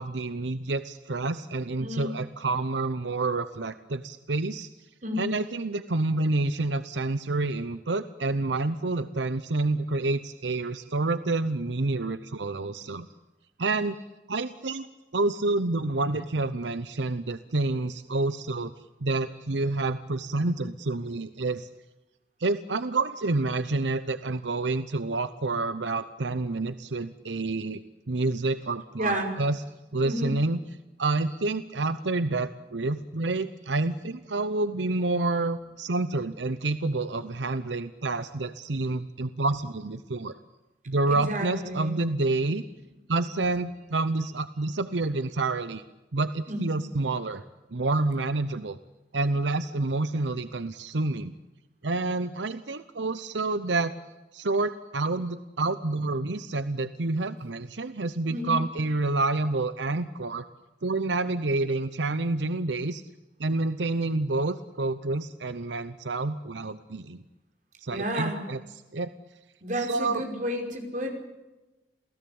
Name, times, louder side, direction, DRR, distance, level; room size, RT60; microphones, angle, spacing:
voice 1, 0.0-4.7 5.2-13.1 13.6-14.0 14.3-14.9 15.1-18.7 19.0-21.7 22.4-27.8 28.1-29.6 29.9-30.6 31.0-40.3 40.9-42.6 43.1-45.8 46.1-47.4 47.7-48.8 49.1-51.3 51.8-53.9 54.3-60.4 60.8-63.0 63.4-67.2 67.8-68.6 68.9-69.1 69.8-70.2, right 2 dB, 85° right, 12 dB, 0.9 m, -28 dB
voice 2, 1.8-2.1 5.0-5.3 29.0-29.3 30.0-30.4 41.1-41.9 46.5-46.8 58.3-58.6 67.9-68.5 69.6-71.1, equal, 45° right, 3 dB, 5.4 m, -31 dB
28.5 x 17.5 x 8.7 m, 1.1 s
head